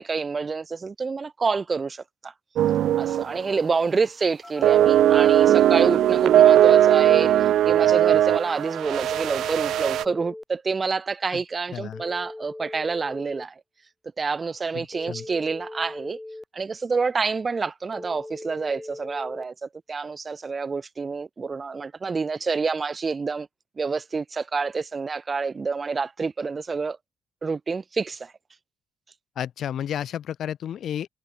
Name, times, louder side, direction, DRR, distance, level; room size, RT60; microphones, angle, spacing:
voice 1, 0.0-2.3 3.0-13.6 14.2-16.2 16.5-23.5 23.8-27.0 27.4-28.3, right 4 dB, 35° right, 0.6 m, -28 dB
sound 1, 2.6-3.4 3.6-3.9 4.6-10.0, right 11 dB, 75° right, 0.6 m, -18 dB
Telephone, 4.4-5.4 5.9-7.4 8.9-10.4 11.9-13.4 14.9-16.4 17.9-19.4, left 2 dB, 10° left, 1.4 m, -40 dB
voice 2, 11.7-12.0 14.7-15.2 29.4-31.1, left 10 dB, 65° left, 2.3 m, -32 dB
cardioid pair, 90°, 0 cm